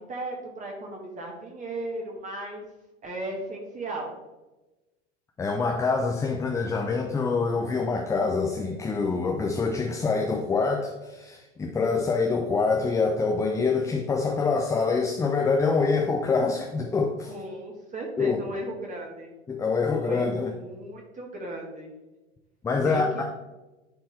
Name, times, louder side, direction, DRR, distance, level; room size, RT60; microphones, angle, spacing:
voice 1, 0.1-2.6 3.0-4.1 17.3-19.3 19.9-21.9 22.8-23.0, right 1 dB, 20° right, -1 dB, 1.4 m, -36 dB
voice 2, 5.4-17.3 18.2-18.4 19.5-20.5 22.6-23.2, left 4 dB, 10° left, 2 dB, 0.4 m, -25 dB
10.5 x 4.3 x 3.2 m, 1.1 s
figure-of-eight pair, 80°, 35 cm